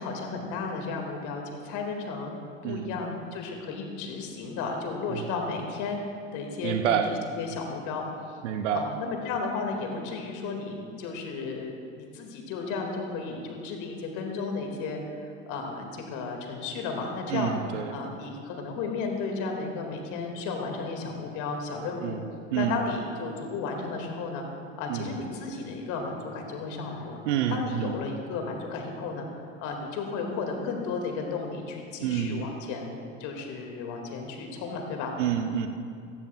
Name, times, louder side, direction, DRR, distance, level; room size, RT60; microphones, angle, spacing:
voice 1, 0.0-2.3 2.6-6.0 6.3-8.0 8.7-15.0 15.5-17.5 17.9-22.2 22.5-24.4 24.8-27.2 27.5-29.3 29.6-35.1, left 4 dB, 50° left, 2 dB, 2.1 m, -34 dB
voice 2, 2.6-3.0 5.1-5.3 6.6-7.1 8.4-8.9 17.3-18.0 22.0-22.2 22.5-22.8 24.9-25.1 27.3-28.0 32.0-32.4 35.2-35.7, right 9 dB, 70° right, 7 dB, 0.8 m, -28 dB
15.5 x 15.5 x 2.3 m, 2.4 s
figure-of-eight pair, 70°, 37 cm